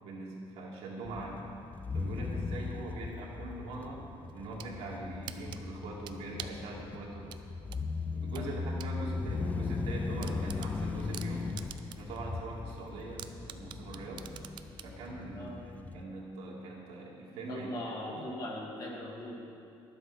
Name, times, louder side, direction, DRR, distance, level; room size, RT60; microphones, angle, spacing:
voice 1, 0.0-1.4 1.9-4.0 4.3-7.3 8.1-11.5 12.0-14.2 14.8-18.2, right 2 dB, 80° right, -3 dB, 2.3 m, -42 dB
sound 1, 1.1-16.0, left 4 dB, 15° left, 0.3 m, -38 dB
sound 2, 4.3-4.7 5.3-6.7 7.3-8.9 9.3-9.4 9.8-9.9 10.2-12.2 12.5-12.6 13.2-14.9, right 11 dB, 50° right, 0.4 m, -45 dB
voice 2, 17.5-19.4, left 1 dB, 40° left, -2 dB, 1.9 m, -40 dB
11.0 x 7.9 x 6.1 m, 2.6 s
cardioid pair, 170°, 10 cm